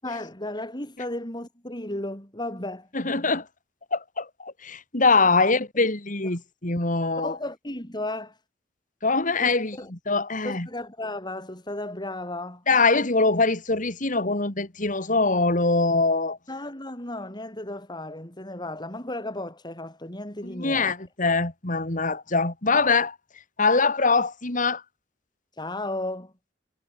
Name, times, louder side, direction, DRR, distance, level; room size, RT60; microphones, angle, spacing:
voice 1, 0.0-2.9 7.2-8.4 9.4-9.9 10.4-12.6 16.5-20.9 25.6-26.3, left 1 dB, 25° left, 7.5 m, -34 dB
voice 2, 2.9-3.4 3.9-7.4 9.0-10.7 12.7-16.4 20.4-23.1 23.6-24.8, left 3 dB, 45° left, 3.1 m, -23 dB
head